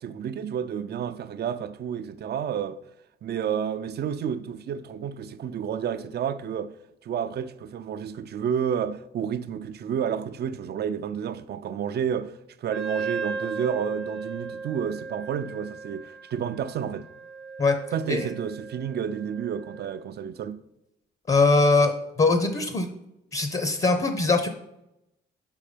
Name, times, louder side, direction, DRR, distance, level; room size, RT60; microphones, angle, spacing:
voice 1, 0.0-2.8 3.2-6.7 7.0-12.3 12.6-17.1 17.9-20.6, right 8 dB, 55° right, 0.5 m, -30 dB
Wind instrument woodwind instrument, 12.7-20.0, right 5 dB, 85° right, 0.8 m, -36 dB
voice 2, 21.3-22.9 23.3-24.5, left 3 dB, 35° left, 0.8 m, -21 dB
5.9 x 5.6 x 5.0 m
cardioid pair, 90°, 20 cm